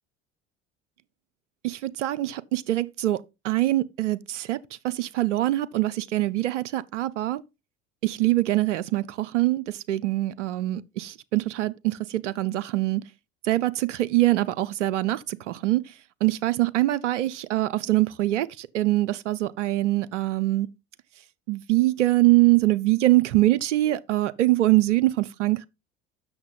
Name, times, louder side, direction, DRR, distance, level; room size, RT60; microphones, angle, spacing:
voice 1, 1.6-3.2 3.4-4.6 4.8-7.4 8.0-13.0 13.5-15.8 16.2-20.7 21.5-25.7, right 17 dB, 85° right, 0.6 m, -23 dB
7.9 x 6.5 x 3.7 m
hypercardioid pair, 65°, 36 cm